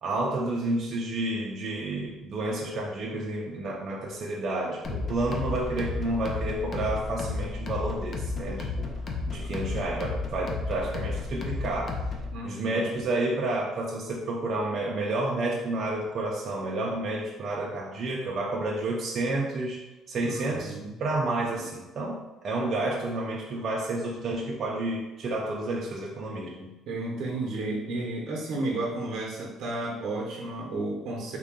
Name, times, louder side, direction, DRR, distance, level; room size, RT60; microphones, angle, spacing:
voice 1, 0.0-8.9 9.3-12.0 12.4-19.8 20.1-20.7 21.0-26.7, right 2 dB, 40° right, -3 dB, 0.5 m, -30 dB
sound 1, 4.8-12.4, left 3 dB, 35° left, 0.5 m, -33 dB
voice 2, 12.3-12.8 20.2-20.9 21.5-21.6 22.5-22.7 26.9-31.4, right 2 dB, 70° right, -2 dB, 0.8 m, -32 dB
3.7 x 2.3 x 3.6 m, 1.1 s
cardioid pair, 155°, 0 cm